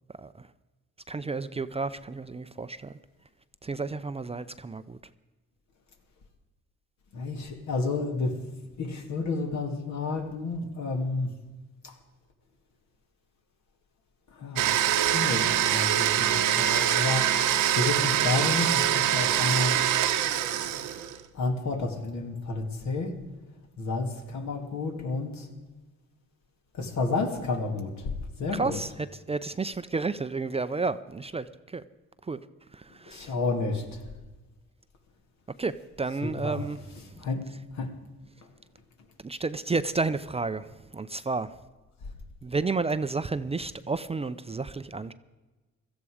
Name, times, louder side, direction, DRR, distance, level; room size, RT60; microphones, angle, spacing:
voice 1, 1.1-2.9 3.6-5.0 28.5-31.8 32.2-32.4 32.7-33.3 35.6-37.2 37.5-37.6 39.2-41.6 42.4-45.1, right 3 dB, 20° right, 12 dB, 0.5 m, -31 dB
voice 2, 7.1-8.4 8.8-11.3 14.4-14.7 15.1-17.3 17.8-19.8 21.4-23.1 23.8-25.5 26.8-28.1 28.4-28.8 33.1-33.8 36.2-36.6 37.2-37.4 37.7-37.9, left 3 dB, 65° left, 4 dB, 2.4 m, -30 dB
Domestic sounds home sounds, 14.6-21.2, right 11 dB, 85° right, 1.1 m, -24 dB
17.0 x 14.0 x 5.0 m, 1.2 s
cardioid pair, 90°, 30 cm